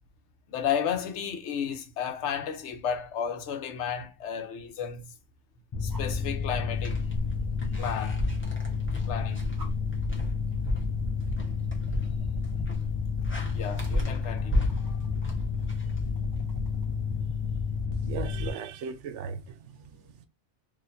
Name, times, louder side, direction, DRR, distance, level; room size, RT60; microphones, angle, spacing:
voice 1, 0.5-5.1 5.8-7.0 7.8-8.3 9.1-9.4 13.5-15.0, left 8 dB, 70° left, 1.0 m, -33 dB
Mechanical fan, 5.7-18.5, left 5 dB, 30° left, 0.6 m, -30 dB
sound 1, 5.9-6.2 7.8-7.9 9.1-9.2 9.6-9.7 10.6-10.9 11.3-16.9 18.6-18.7, equal, 20° right, 0.6 m, -43 dB
sound 2, 6.8-16.6, equal, 10° left, 0.9 m, -34 dB
voice 2, 17.9-20.3, right 7 dB, 80° right, 0.9 m, -38 dB
4.2 x 2.7 x 2.5 m
omnidirectional pair, 1.2 m